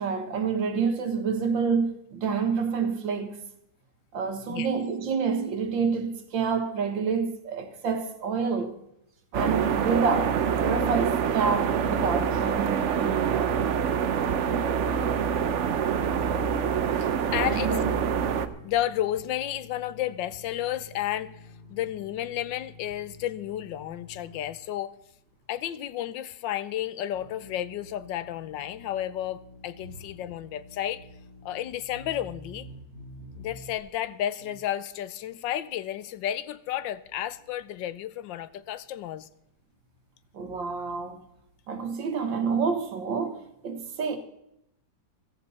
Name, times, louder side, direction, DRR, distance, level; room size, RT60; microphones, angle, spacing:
voice 1, 0.0-3.4 4.1-8.7 9.3-13.5 17.4-18.0 40.3-41.2 41.7-44.2, right 5 dB, 85° right, 2.2 m, -28 dB
sound 1, 9.3-18.5, right 7 dB, 60° right, 0.8 m, -26 dB
sound 2, 15.8-24.8 25.4-25.5 25.9-26.0 27.1-33.9 34.4-34.6, left 2 dB, 50° left, 7.7 m, -49 dB
voice 2, 17.0-17.8 18.6-24.9 25.5-31.1 31.4-32.7 33.4-39.3, left 12 dB, 80° left, 1.4 m, -32 dB
15.0 x 14.5 x 4.2 m
omnidirectional pair, 2.0 m